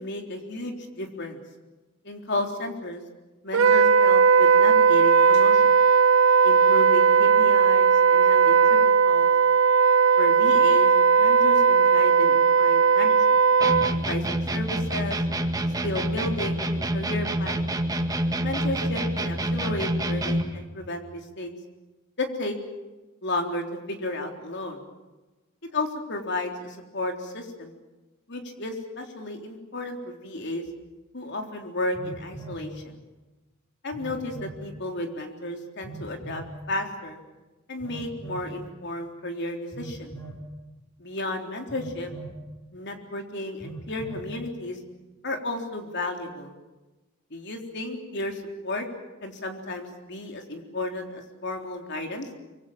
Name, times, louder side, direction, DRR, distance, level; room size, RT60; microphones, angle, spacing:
voice 1, 0.0-1.4 2.0-3.0 3.4-5.7 6.4-8.8 9.1-9.3 10.2-10.9 11.2-13.4 14.1-15.2 15.8-17.7 18.4-21.5 22.2-22.6 23.2-24.8 25.7-27.7 28.3-30.6 31.1-32.9 33.8-37.2 37.7-40.1 41.0-42.1 42.7-44.8 45.2-46.5 47.3-48.9 49.2-52.3, left 2 dB, 60° left, 3 dB, 3.8 m, -33 dB
Wind instrument woodwind instrument, 3.5-13.9, right 5 dB, 80° right, 1.0 m, -18 dB
sound 1, 13.6-20.6, right 1 dB, 20° right, 2.0 m, -27 dB
Telephone, 30.6-30.7 31.9-32.7 33.9-34.6 35.8-36.5 37.8-38.5 39.7-40.4 41.7-42.4 43.6-44.3, right 3 dB, 20° left, 7.8 m, -40 dB
25.0 x 24.5 x 7.3 m, 1.1 s
head